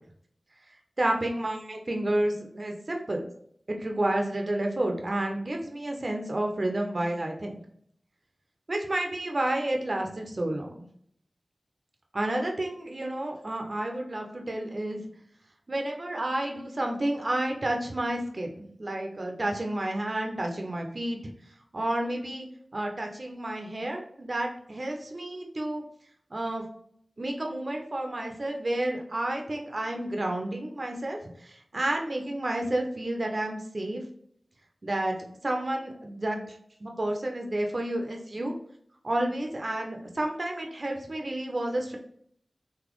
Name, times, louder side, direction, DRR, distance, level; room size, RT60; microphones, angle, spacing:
voice 1, 1.0-3.2 3.7-7.5 8.7-10.7 12.1-15.0 15.7-18.5 18.8-21.2 21.7-22.5 22.7-25.8 26.3-26.6 27.2-34.0 34.8-35.2 35.4-38.5 39.0-42.0, right 1 dB, 55° right, 2 dB, 0.8 m, -30 dB
4.1 x 2.8 x 3.1 m, 0.65 s
cardioid pair, 40°, 0 cm